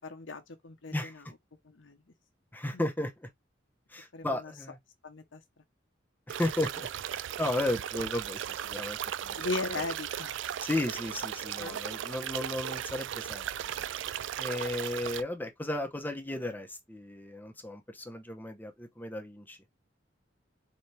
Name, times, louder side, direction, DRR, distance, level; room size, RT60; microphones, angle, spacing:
voice 1, 0.0-1.2 1.6-2.0 4.1-4.5 5.0-5.4 9.4-10.4 11.6-11.8, left 3 dB, 80° left, 0.9 m, -37 dB
voice 2, 0.9-1.3 2.5-3.3 3.9-4.8 6.3-9.4 9.8-9.9 10.6-13.8 14.4-19.6, left 1 dB, 10° left, 0.8 m, -35 dB
sound 1, 6.3-15.2, right 10 dB, 75° right, 0.3 m, -36 dB
4.2 x 2.8 x 3.3 m
head